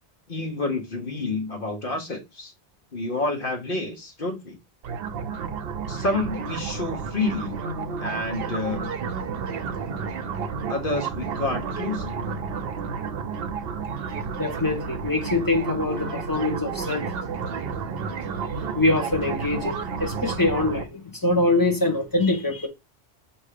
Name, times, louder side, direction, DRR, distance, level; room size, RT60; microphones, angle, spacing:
voice 1, 0.3-2.5 2.9-4.6 5.9-7.6 8.0-8.9 10.7-12.2, left 2 dB, 50° left, 1.4 m, -29 dB
sound 1, 4.8-20.8, right 5 dB, 60° right, 0.9 m, -31 dB
voice 2, 14.4-17.1 18.7-22.7, left 2 dB, 20° left, 1.3 m, -24 dB
6.4 x 3.0 x 5.0 m
omnidirectional pair, 1.2 m